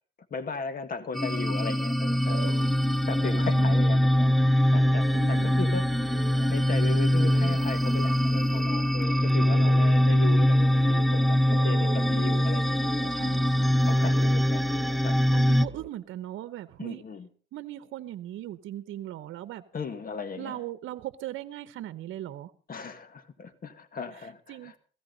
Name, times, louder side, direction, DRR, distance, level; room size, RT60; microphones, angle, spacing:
voice 1, 0.3-2.5 3.1-4.4 4.7-12.8 13.9-14.7 15.0-15.2 16.8-17.3 19.7-20.6 22.7-24.7, left 4 dB, 45° left, 1.9 m, -37 dB
sound 1, 1.1-15.6, equal, ahead, 0.6 m, -23 dB
sound 2, 2.2-15.9, right 7 dB, 35° right, 1.0 m, -43 dB
voice 2, 3.4-3.8 5.1-5.6 13.0-13.9 15.3-17.0 17.5-19.6 20.4-22.5 24.1-24.8, right 13 dB, 80° right, 0.8 m, -39 dB
16.0 x 15.5 x 4.0 m
cardioid pair, 90°, 20 cm